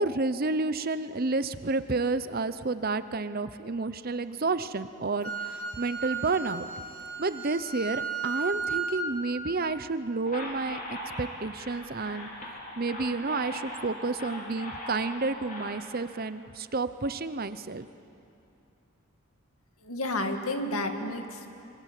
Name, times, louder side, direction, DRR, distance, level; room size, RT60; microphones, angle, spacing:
voice 1, 0.0-6.7 7.2-12.3 12.8-17.9, right 3 dB, 45° right, 13 dB, 0.8 m, -30 dB
Wind instrument woodwind instrument, 5.2-9.1, right 5 dB, 60° right, 4.3 m, -34 dB
sound 1, 10.2-15.7, left 1 dB, 40° left, 5.2 m, -40 dB
voice 2, 19.8-21.5, left 1 dB, 80° left, 5 dB, 2.2 m, -31 dB
26.0 x 25.5 x 8.3 m, 2.7 s
head